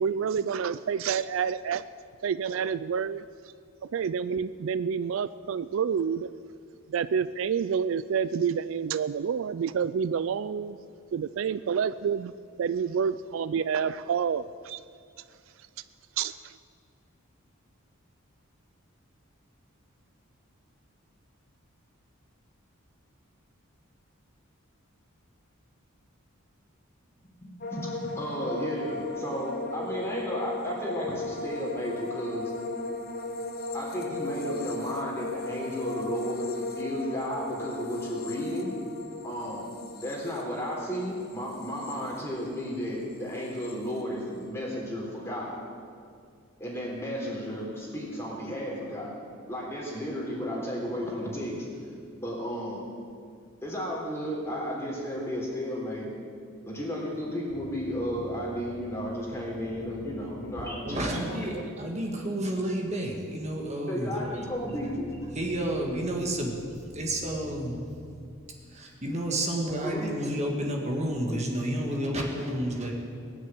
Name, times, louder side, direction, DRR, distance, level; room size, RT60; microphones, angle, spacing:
voice 1, 0.0-1.8 2.2-3.2 3.8-6.3 6.9-10.8 11.1-12.3 12.6-14.8 16.2-16.6, right 7 dB, 65° right, 14 dB, 0.3 m, -28 dB
voice 2, 27.4-32.5 33.7-36.5 36.8-38.8 39.2-45.6 46.6-49.2 49.5-51.6 52.2-52.8 53.6-56.1 56.7-61.6 63.9-65.1 69.8-70.1, equal, 10° left, -4 dB, 3.6 m, -33 dB
sound 1, 27.6-42.8 43.1-43.7, left 2 dB, 45° left, 1.3 m, -37 dB
sound 2, 57.5-60.6 64.2-68.8, equal, 15° right, 2.1 m, -46 dB
voice 3, 60.9-64.2 65.3-66.5 66.9-67.8 68.7-72.9, right 1 dB, 35° right, 1 dB, 1.8 m, -30 dB
19.0 x 6.6 x 9.3 m, 2.3 s
head